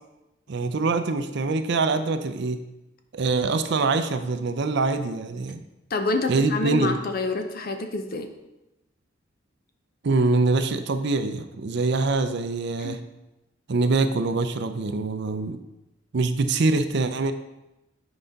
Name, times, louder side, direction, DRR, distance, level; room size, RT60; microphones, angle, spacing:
voice 1, 0.5-2.6 3.1-5.6 6.3-7.0 10.0-13.0 13.7-15.6 16.1-17.3, right 3 dB, 60° right, 9 dB, 0.5 m, -24 dB
voice 2, 5.9-8.3 12.8-13.0, left 2 dB, 50° left, 6 dB, 0.7 m, -27 dB
7.8 x 4.9 x 3.9 m, 0.96 s
head